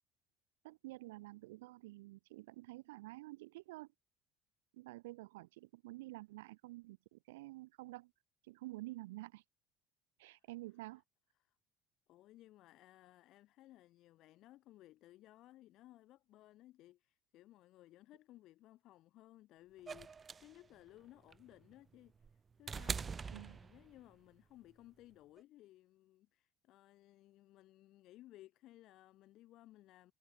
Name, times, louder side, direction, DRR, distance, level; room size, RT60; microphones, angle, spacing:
voice 1, 0.6-3.9 4.7-8.1 8.5-9.4 10.2-11.0 23.3-23.6, right 20 dB, 85° right, 0.6 m, -50 dB
voice 2, 12.1-30.1, left 15 dB, 65° left, 2.2 m, -60 dB
sound 1, 19.9-24.1 25.4-25.5, right 5 dB, 30° right, 0.5 m, -44 dB
supercardioid pair, 80°, 0 cm